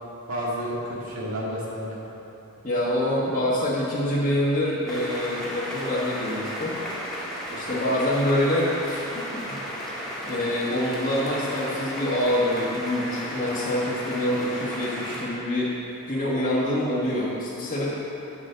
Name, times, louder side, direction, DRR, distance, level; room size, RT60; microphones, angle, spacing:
voice 1, 0.3-2.0 7.5-7.8, equal, 70° right, -5 dB, 2.0 m, -31 dB
voice 2, 2.6-6.8 7.6-9.0 9.5-9.6 10.2-15.7 16.1-17.9, left 1 dB, 40° left, -9 dB, 1.5 m, -25 dB
sound 1, 4.9-15.2, equal, ahead, 1.7 m, -34 dB
8.0 x 5.4 x 7.5 m, 3.0 s
head